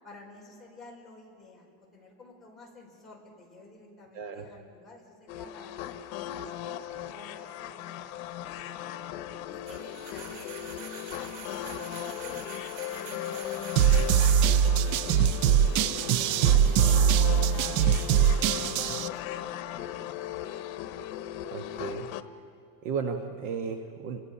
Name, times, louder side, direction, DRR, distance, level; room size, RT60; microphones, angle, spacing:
voice 1, 0.0-6.2 7.1-8.2 9.3-12.5 13.0-15.1 15.6-16.8 17.3-18.7 19.0-20.8, left 2 dB, ahead, -6 dB, 4.8 m, -51 dB
sound 1, 5.3-22.2, left 12 dB, 80° left, 1.1 m, -37 dB
sound 2, 9.7-14.9, right 6 dB, 60° right, 2.6 m, -45 dB
sound 3, 13.8-19.1, right 8 dB, 85° right, 0.8 m, -22 dB
voice 2, 21.5-22.1 22.8-24.2, right 5 dB, 45° right, 5 dB, 1.2 m, -34 dB
29.0 x 23.5 x 5.6 m, 2.4 s
cardioid pair, 175°, 41 cm